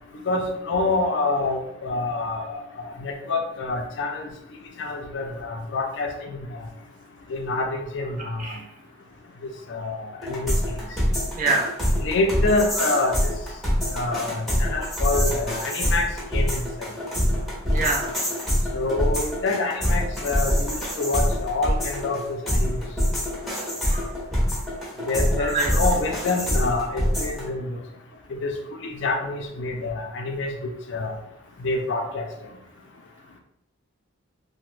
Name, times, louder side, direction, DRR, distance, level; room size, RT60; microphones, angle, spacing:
voice 1, 0.3-4.3 4.8-6.6 7.3-8.4 9.7-10.6 11.9-13.3 13.9-16.1 16.3-16.6 18.7-22.8 25.1-27.8 28.3-28.5 28.8-31.1 31.6-32.2, left 3 dB, 60° left, 3 dB, 0.4 m, -27 dB
voice 2, 8.2-8.6 11.3-11.7 17.7-18.1 23.8-24.1 25.4-25.8, right 3 dB, 40° right, 1 dB, 0.5 m, -26 dB
sound 1, 10.2-27.4, equal, ahead, 0.7 m, -25 dB
2.9 x 2.1 x 3.1 m, 0.79 s
head